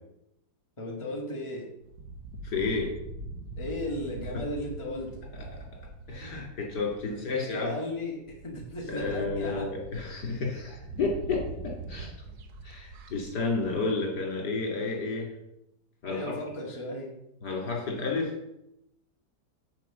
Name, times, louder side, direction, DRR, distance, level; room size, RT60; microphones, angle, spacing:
voice 1, 0.8-1.6 3.6-5.2 7.1-9.7 16.1-17.1, left 1 dB, 15° left, -2 dB, 1.9 m, -36 dB
sound 1, 1.8-7.4 7.9-8.0 8.3-13.8, right 2 dB, 70° right, 1.4 m, -43 dB
voice 2, 2.4-2.9 5.3-5.6 6.1-7.8 8.9-12.1 12.6-15.3 16.0-16.3 17.4-18.3, left 3 dB, 75° left, -1 dB, 3.5 m, -31 dB
9.9 x 4.7 x 7.0 m, 0.84 s
omnidirectional pair, 1.8 m